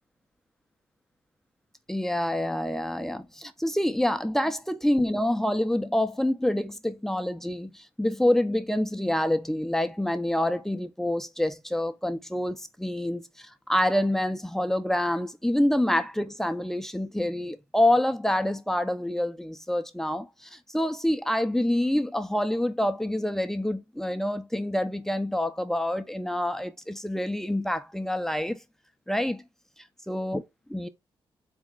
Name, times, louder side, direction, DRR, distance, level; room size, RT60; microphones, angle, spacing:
voice 1, 1.9-28.6 29.1-29.4 30.1-30.4 30.7-30.9, left 1 dB, 5° left, 0.5 m, -27 dB
4.1 x 2.4 x 3.7 m
cardioid pair, 75°, 10 cm